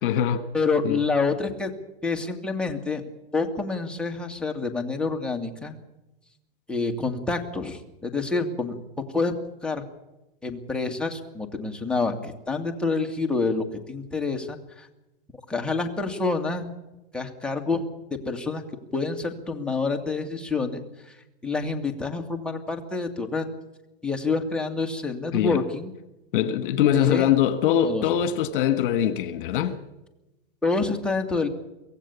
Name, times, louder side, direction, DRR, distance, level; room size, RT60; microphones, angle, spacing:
voice 1, 0.0-0.4 0.8-1.0 25.3-25.6 26.3-29.8, left 10 dB, 60° left, 1.7 m, -23 dB
voice 2, 0.5-1.7 2.0-3.0 3.3-5.7 6.7-8.8 9.1-9.3 9.6-9.8 10.4-14.9 15.5-16.7 17.1-17.9 18.3-18.6 18.9-20.8 21.4-23.5 24.0-25.9 26.9-27.3 27.8-28.0 30.6-31.5, left 3 dB, 5° left, 2.1 m, -27 dB
24.0 x 16.5 x 7.2 m
hypercardioid pair, 135°, 29 cm